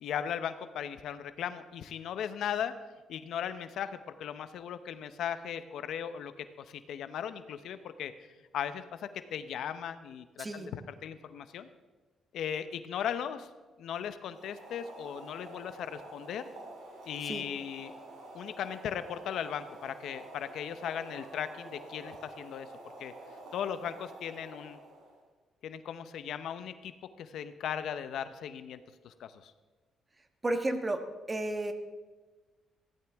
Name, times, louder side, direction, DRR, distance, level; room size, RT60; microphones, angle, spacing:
voice 1, 0.0-2.8 3.1-8.3 8.5-11.7 12.3-13.5 13.8-16.5 17.1-17.9 18.3-22.7 23.0-23.1 23.5-24.8 25.6-26.9 27.2-29.5, left 9 dB, 75° left, 11 dB, 0.8 m, -37 dB
voice 2, 10.4-10.7 17.2-17.5 30.4-31.7, right 1 dB, 25° right, 7 dB, 1.3 m, -33 dB
Boiling, 14.2-25.2, right 2 dB, 75° right, 3.5 m, -48 dB
16.0 x 14.0 x 3.6 m, 1.3 s
cardioid pair, 90°, 0 cm